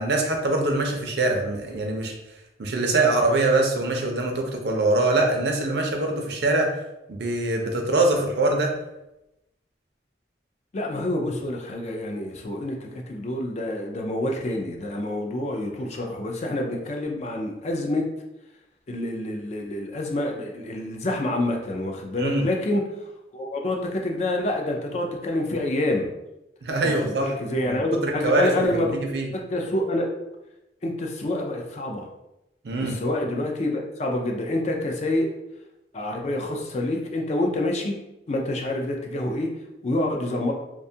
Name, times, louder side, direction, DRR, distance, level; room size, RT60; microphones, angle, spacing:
voice 1, 0.0-2.1 2.6-6.7 7.1-8.7 22.2-22.4 26.6-27.3 27.6-29.3 32.6-33.0, right 2 dB, 60° right, 2 dB, 0.5 m, -23 dB
voice 2, 10.7-18.0 18.9-22.8 23.3-26.1 26.8-28.9 29.3-30.1 30.8-32.1 32.8-35.3 35.9-38.0 38.3-39.5 39.8-40.5, left 1 dB, 35° left, 1 dB, 0.4 m, -27 dB
2.5 x 2.2 x 2.7 m, 0.91 s
head